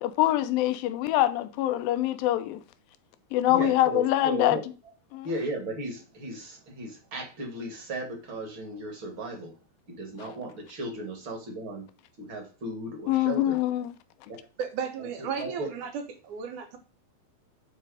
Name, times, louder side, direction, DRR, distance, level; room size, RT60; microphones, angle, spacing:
voice 1, 0.0-2.6 3.3-4.6 5.1-5.4 10.2-10.3 13.1-13.9, left 14 dB, 75° left, 2.4 m, -24 dB
voice 2, 3.5-4.6 5.2-9.5 9.9-11.9 12.2-13.6 15.4-15.7, right 1 dB, 40° right, 2.2 m, -36 dB
voice 3, 14.6-16.8, right 7 dB, 65° right, 2.2 m, -34 dB
9.0 x 4.4 x 4.9 m
omnidirectional pair, 4.5 m